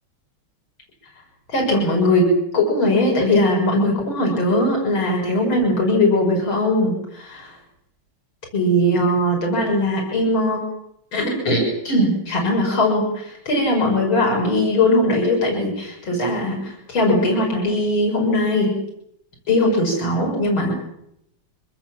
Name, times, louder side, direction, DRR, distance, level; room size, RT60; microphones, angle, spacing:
voice 1, 1.5-2.3 2.5-7.6 8.5-10.6 11.1-18.8 19.5-20.8, left 1 dB, 70° left, 0 dB, 7.5 m, -20 dB
26.0 x 20.5 x 7.6 m, 0.76 s
omnidirectional pair, 2.3 m